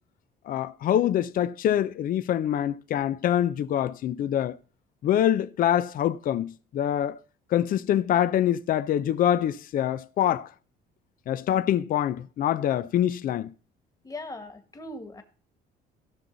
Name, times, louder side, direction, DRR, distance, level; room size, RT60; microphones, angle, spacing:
voice 1, 0.5-4.6 5.0-7.2 7.5-10.5 11.3-13.5, left 11 dB, 55° left, 0.6 m, -25 dB
voice 2, 14.0-15.2, left 2 dB, 20° left, 1.8 m, -39 dB
16.5 x 6.2 x 3.9 m
cardioid pair, 110°, 17 cm